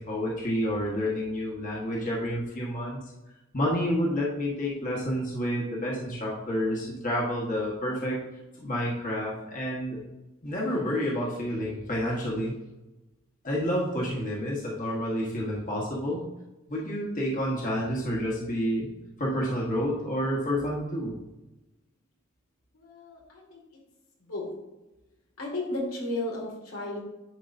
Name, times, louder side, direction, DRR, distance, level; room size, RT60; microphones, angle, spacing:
voice 1, 0.0-3.0 3.5-8.2 8.6-10.0 10.4-12.6 13.4-16.2 16.7-18.9 19.2-21.1, equal, 40° left, -4 dB, 1.4 m, -29 dB
voice 2, 22.7-23.6 24.3-24.5 25.4-27.0, left 2 dB, 90° left, -2 dB, 2.2 m, -34 dB
10.5 x 4.7 x 2.6 m, 1.0 s
head